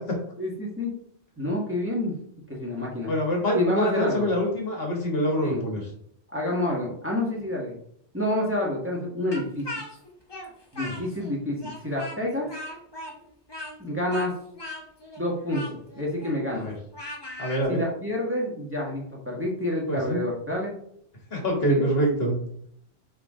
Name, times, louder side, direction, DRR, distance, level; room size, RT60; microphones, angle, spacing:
voice 1, 0.4-0.9 1.4-2.2 2.5-3.1 3.5-4.3 5.4-5.7 6.3-7.8 8.1-9.7 10.7-12.5 13.8-14.3 15.2-16.7 17.7-20.7 21.6-21.8, left 1 dB, 10° right, -3 dB, 1.8 m, -28 dB
voice 2, 3.1-5.8 16.5-16.7 17.4-17.8 19.9-20.2 21.3-22.4, equal, 60° left, 1 dB, 1.9 m, -25 dB
Speech, 9.3-11.3 11.6-17.6, left 1 dB, 20° left, 1.3 m, -39 dB
6.7 x 4.8 x 3.8 m, 0.67 s
omnidirectional pair, 1.1 m